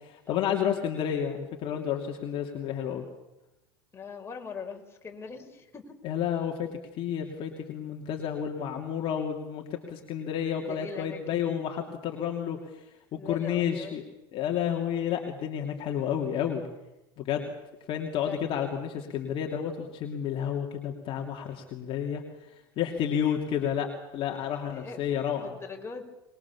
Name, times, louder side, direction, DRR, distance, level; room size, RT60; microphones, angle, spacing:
voice 1, 0.0-3.0 6.0-6.7 7.0-12.8 13.1-14.0 14.3-16.7 17.2-17.5 17.9-22.2 22.8-25.6, left 9 dB, 45° left, 2 dB, 2.8 m, -31 dB
voice 2, 3.9-6.0 10.6-11.6 13.2-14.0 18.3-18.6 24.7-25.0 25.3-26.0, left 5 dB, 20° left, 2 dB, 4.8 m, -41 dB
25.0 x 21.5 x 7.2 m, 0.96 s
hypercardioid pair, 85°, 13 cm